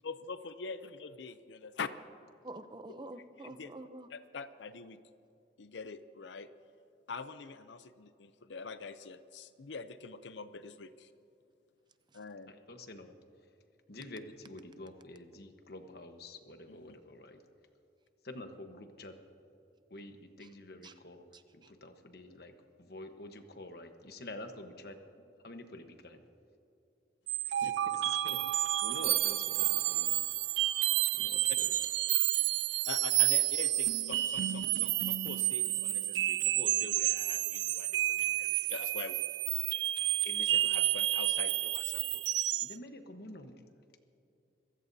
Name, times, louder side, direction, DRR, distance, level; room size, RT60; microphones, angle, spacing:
voice 1, 0.0-1.9 3.4-3.7 4.1-5.0 5.6-6.5 7.1-11.1 12.1-12.5 16.7-17.0 27.6-27.7 32.9-39.2 40.2-42.2, left 4 dB, 80° left, 12 dB, 0.6 m, -44 dB
voice 2, 2.4-4.1 12.1-12.2 20.4-20.5 20.8-20.9 21.3-21.7, right 2 dB, 25° right, 10 dB, 0.6 m, -48 dB
voice 3, 12.5-13.2 13.9-17.4 18.2-19.1 19.9-22.5 22.8-26.2 27.4-30.2 31.2-31.7 42.6-43.6, left 1 dB, 60° left, 6 dB, 1.2 m, -48 dB
sound 1, 27.3-42.7, right 15 dB, 75° right, 0.3 m, -30 dB
26.5 x 15.5 x 2.7 m, 2.6 s
head